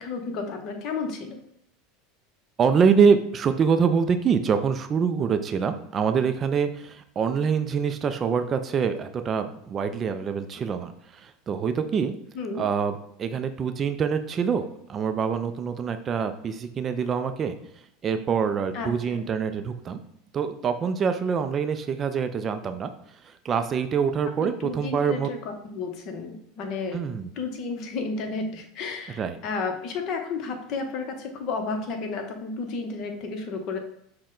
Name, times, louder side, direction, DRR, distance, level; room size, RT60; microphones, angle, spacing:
voice 1, 0.0-1.4 12.3-12.6 18.7-19.2 24.4-27.0 27.4-33.8, left 4 dB, 50° left, 4 dB, 0.8 m, -32 dB
voice 2, 2.6-12.1 12.6-17.6 18.0-20.0 20.3-22.9 23.2-25.3 26.9-27.3 29.2-29.4, right 6 dB, 30° right, 8 dB, 0.3 m, -25 dB
6.1 x 2.2 x 3.8 m, 0.74 s
supercardioid pair, 120°, 0 cm